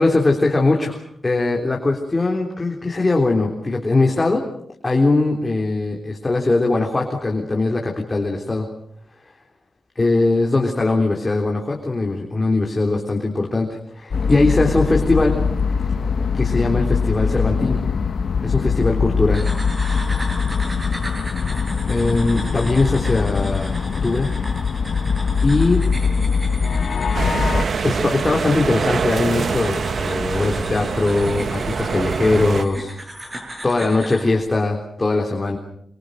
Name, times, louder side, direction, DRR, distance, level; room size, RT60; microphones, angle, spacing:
voice 1, 0.0-4.4 4.8-8.7 10.0-15.4 16.3-17.8 18.4-19.5 21.9-23.7 24.0-24.3 25.4-25.8 27.8-32.9 33.6-35.6, left 2 dB, 25° left, 0 dB, 3.5 m, -20 dB
sound 1, 14.1-27.7, left 5 dB, 65° left, 0.9 m, -22 dB
sound 2, 19.3-34.3, equal, 20° right, 7.9 m, -36 dB
sound 3, 27.1-32.7, right 5 dB, 65° right, 1.1 m, -24 dB
27.0 x 25.0 x 6.5 m, 0.73 s
wide cardioid pair, 120°, 0 cm